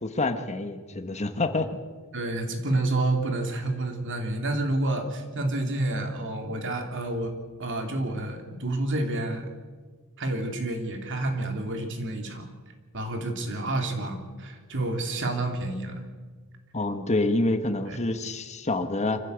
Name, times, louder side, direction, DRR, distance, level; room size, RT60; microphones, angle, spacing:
voice 1, 0.0-1.8 16.7-19.2, left 2 dB, 30° left, 8 dB, 1.3 m, -27 dB
voice 2, 2.1-7.3 7.6-9.5 10.2-12.5 12.9-16.0 17.9-18.0, right 2 dB, 60° right, 4 dB, 3.0 m, -29 dB
25.5 x 15.0 x 8.2 m, 1.4 s
head